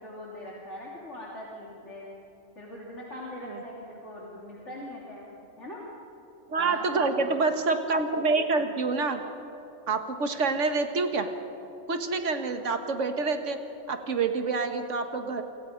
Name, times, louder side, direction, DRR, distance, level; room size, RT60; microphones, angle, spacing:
voice 1, 0.0-2.1 2.6-5.8 6.6-7.4, left 1 dB, 65° left, -5 dB, 3.4 m, -41 dB
voice 2, 6.5-9.2 9.9-11.3 11.9-13.6 13.9-15.4, right 4 dB, 70° right, 6 dB, 1.8 m, -27 dB
28.5 x 25.0 x 5.2 m, 3.0 s
omnidirectional pair, 1.3 m